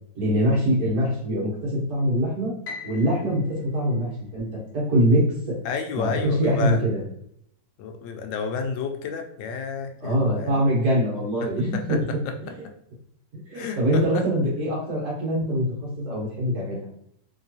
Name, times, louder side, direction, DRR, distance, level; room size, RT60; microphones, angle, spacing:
voice 1, 0.2-2.5 2.8-4.5 4.7-5.5 5.9-7.0 10.0-12.0 12.4-12.5 13.3-16.8, equal, 55° right, -5 dB, 2.0 m, -23 dB
Piano, 2.6-4.9, left 4 dB, 50° left, 0.8 m, -42 dB
voice 2, 5.6-6.8 7.8-10.6 11.4-12.7 13.5-14.3, left 5 dB, 80° left, 5 dB, 1.3 m, -31 dB
3.6 x 3.2 x 2.7 m, 0.72 s
omnidirectional pair, 2.0 m